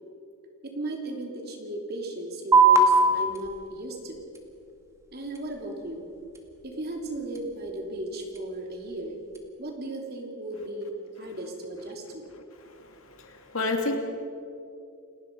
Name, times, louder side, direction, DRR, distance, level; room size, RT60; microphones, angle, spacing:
voice 1, 0.6-4.3 5.1-6.1 6.6-9.2 9.6-12.2, right 2 dB, 45° right, 2 dB, 3.2 m, -36 dB
sound 1, 2.5-9.5, right 3 dB, 15° right, 2.1 m, -26 dB
voice 2, 12.7-14.0, left 2 dB, 65° left, 3 dB, 2.7 m, -31 dB
29.5 x 19.0 x 5.4 m, 2.6 s
head